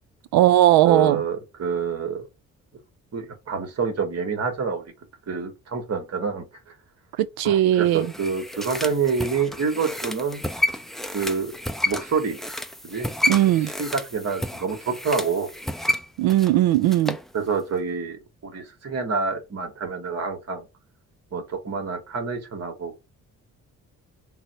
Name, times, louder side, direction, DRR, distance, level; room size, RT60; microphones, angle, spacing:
voice 1, 0.3-1.2 7.4-8.1 13.3-13.7 16.2-17.2, right 13 dB, 75° right, 0.5 m, -18 dB
voice 2, 0.8-2.3 3.1-4.8 5.3-6.7 7.4-10.4 11.1-11.5 11.9-12.4 12.8-13.1 13.6-15.5 17.3-20.6 21.3-23.1, right 5 dB, 40° right, 1.3 m, -27 dB
sound 1, 7.9-17.3 17.6-17.7, left 1 dB, ahead, 0.4 m, -30 dB
4.0 x 2.1 x 4.1 m
supercardioid pair, 50°, 38 cm